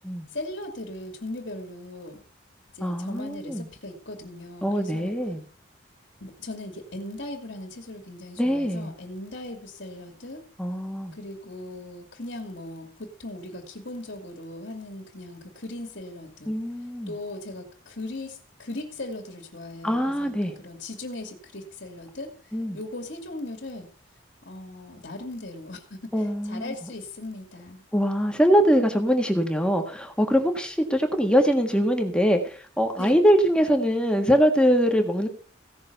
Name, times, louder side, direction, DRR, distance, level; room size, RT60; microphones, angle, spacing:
voice 1, 0.3-2.2 2.7-5.2 6.2-10.5 11.1-16.6 17.1-23.9 24.4-27.8 33.0-33.2, left 2 dB, 60° left, 2 dB, 2.5 m, -38 dB
voice 2, 2.8-3.7 4.6-5.4 8.4-8.9 10.6-11.1 16.5-17.1 19.8-20.5 22.5-22.8 26.1-26.7 27.9-35.3, equal, 5° left, 4 dB, 1.5 m, -23 dB
16.5 x 6.4 x 6.8 m, 0.42 s
head